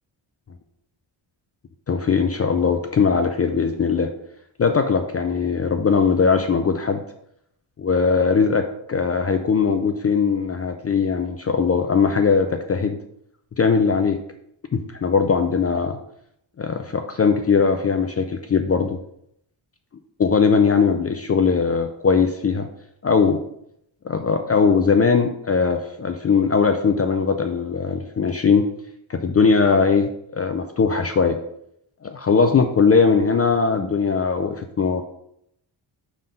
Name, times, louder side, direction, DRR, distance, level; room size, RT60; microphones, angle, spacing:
voice 1, 1.9-4.1 4.6-7.0 7.8-13.0 13.6-14.2 14.7-16.0 16.6-19.0 20.2-22.7 23.0-23.4 24.0-28.7 29.1-31.4 32.0-35.0, left 5 dB, 35° left, 6 dB, 0.4 m, -20 dB
5.8 x 3.7 x 5.2 m, 0.74 s
wide cardioid pair, 155°, 47 cm